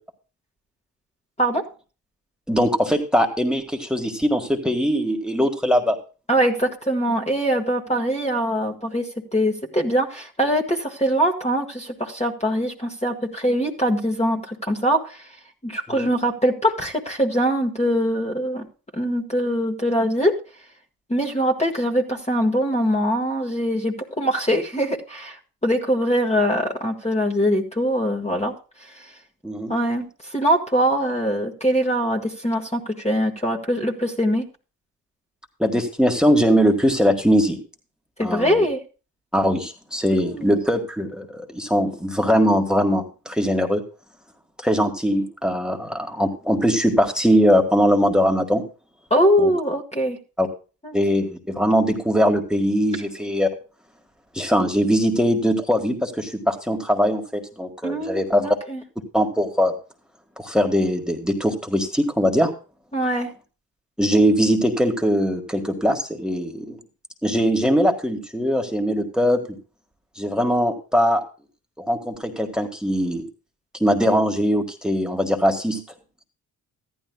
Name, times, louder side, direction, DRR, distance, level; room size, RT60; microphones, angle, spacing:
voice 1, 2.5-6.0 15.9-16.1 29.4-29.7 35.6-37.6 38.2-38.6 39.3-43.8 44.6-48.6 49.4-49.5 50.4-50.5 50.9-53.5 54.3-58.6 59.1-59.7 60.4-62.5 64.0-66.8 67.2-69.6 70.2-71.2 71.8-73.3 73.8-75.8, equal, ahead, 4 dB, 1.7 m, -21 dB
voice 2, 6.3-15.3 15.6-18.6 18.9-20.4 21.1-28.5 29.7-34.4 38.2-38.8 40.1-40.5 49.1-50.2 50.8-51.0 57.8-58.8 62.9-63.3, equal, 15° left, 2 dB, 1.6 m, -22 dB
14.0 x 11.0 x 2.3 m, 0.34 s
supercardioid pair, 45°, 41 cm